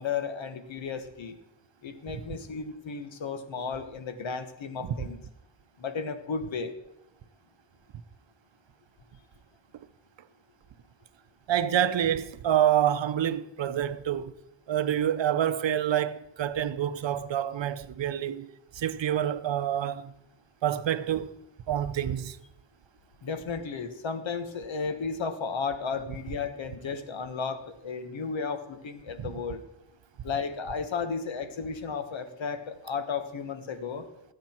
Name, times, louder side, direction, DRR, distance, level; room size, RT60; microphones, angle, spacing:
voice 1, 0.0-1.4 1.8-5.2 5.8-6.7 23.2-29.6 30.2-34.0, left 5 dB, 80° left, 1.5 m, -34 dB
voice 2, 11.5-14.3 14.7-18.5 18.7-20.1 20.6-21.3 21.7-22.4 29.2-29.3, right 10 dB, 70° right, 0.7 m, -27 dB
19.0 x 8.6 x 4.5 m
wide cardioid pair, 145°, 46 cm